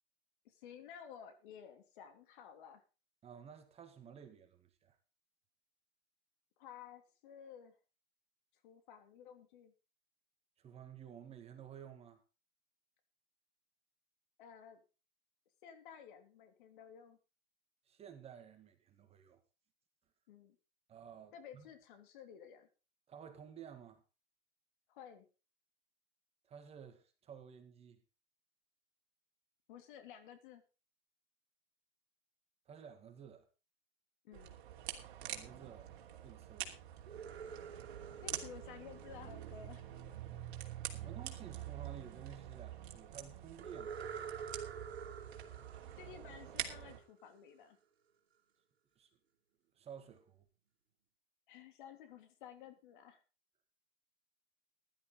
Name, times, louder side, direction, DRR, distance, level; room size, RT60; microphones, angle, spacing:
voice 1, 0.4-2.8 6.6-7.7 8.6-9.7 14.4-14.8 15.6-17.2 20.3-20.6 21.3-22.7 24.9-25.3 29.7-30.6 34.2-34.6 38.2-39.9 46.0-47.8 51.5-53.2, left 8 dB, 55° left, 3.0 m, -54 dB
voice 2, 3.2-5.0 10.6-12.2 17.9-19.4 20.9-21.7 23.1-24.0 26.5-28.0 32.7-33.5 35.2-35.9 36.2-36.8 40.8-44.7 49.0-49.1 49.8-50.4, right 8 dB, 20° right, 1.9 m, -53 dB
sound 1, 34.3-47.0, right 11 dB, 55° right, 2.9 m, -46 dB
sound 2, 37.0-39.9 43.6-47.3, right 7 dB, 85° right, 2.1 m, -48 dB
15.5 x 11.5 x 3.9 m
hypercardioid pair, 135°, 31 cm